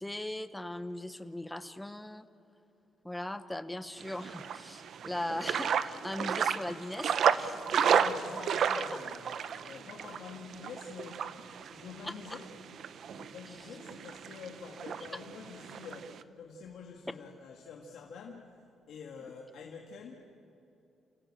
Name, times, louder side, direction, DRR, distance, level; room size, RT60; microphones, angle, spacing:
voice 1, 0.0-2.3 3.0-7.6 7.9-8.0 8.6-9.0 12.0-12.4, left 1 dB, 5° left, 11 dB, 0.8 m, -39 dB
sound 1, 4.0-16.2, right 8 dB, 55° right, 0.8 m, -33 dB
voice 2, 7.4-11.4 11.7-12.6 13.1-18.5 18.9-20.3, left 5 dB, 65° left, 0 dB, 2.0 m, -47 dB
29.5 x 16.0 x 8.8 m, 3.0 s
cardioid pair, 165°, 0 cm